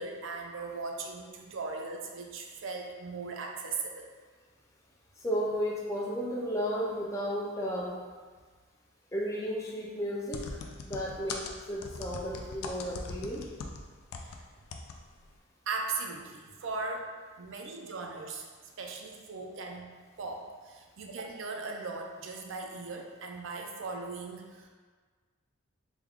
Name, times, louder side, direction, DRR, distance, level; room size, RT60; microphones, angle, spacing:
voice 1, 0.0-4.1 14.2-14.4 15.7-18.5 18.8-19.9 20.2-24.7, right 3 dB, 60° right, 2 dB, 0.4 m, -38 dB
voice 2, 5.2-8.0 9.1-10.5 10.9-11.4 11.7-13.5, equal, 15° left, -3 dB, 0.4 m, -33 dB
sound 1, 10.3-14.4 14.7-15.0 15.2-15.3, left 4 dB, 85° left, 0.4 m, -40 dB
3.5 x 2.2 x 3.5 m, 1.5 s
head